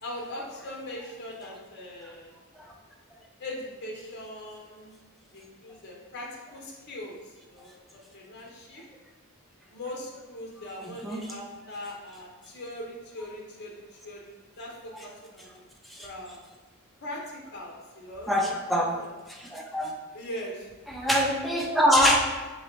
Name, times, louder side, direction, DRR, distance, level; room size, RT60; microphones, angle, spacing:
voice 1, 0.0-2.3 3.4-4.9 5.3-7.2 7.5-7.7 8.1-8.8 9.7-14.3 14.6-15.5 16.0-16.4 17.0-19.1 20.1-20.7, left 1 dB, 45° left, -2 dB, 0.7 m, -40 dB
voice 2, 10.8-11.3 15.8-16.1 18.3-19.0 19.3-19.9 20.9-22.2, equal, ahead, -1 dB, 0.3 m, -24 dB
3.8 x 3.0 x 2.9 m, 1.3 s
head